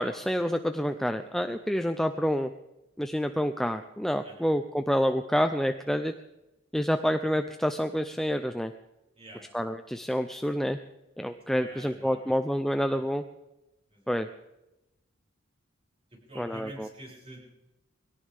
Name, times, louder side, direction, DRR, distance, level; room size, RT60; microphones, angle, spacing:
voice 1, 0.0-2.5 3.0-6.1 6.7-8.7 9.5-10.8 11.2-13.2 14.1-14.3 16.4-16.9, equal, ahead, 7 dB, 0.5 m, -28 dB
voice 2, 11.5-12.3 12.7-13.1 13.9-14.2 16.1-17.4, right 1 dB, 30° right, -3 dB, 6.7 m, -48 dB
22.0 x 17.5 x 3.5 m, 0.93 s
head